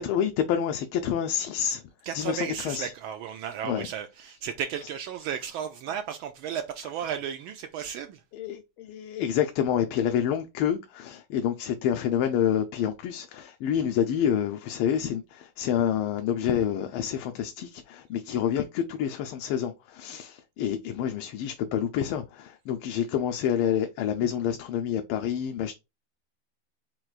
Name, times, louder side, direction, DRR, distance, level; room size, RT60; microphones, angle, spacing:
voice 1, 0.0-1.8 2.1-2.9 3.6-3.9 8.3-25.7, left 9 dB, 85° left, 1.5 m, -28 dB
voice 2, 2.0-8.2, right 8 dB, 80° right, 1.3 m, -34 dB
4.6 x 4.3 x 2.4 m
omnidirectional pair, 2.3 m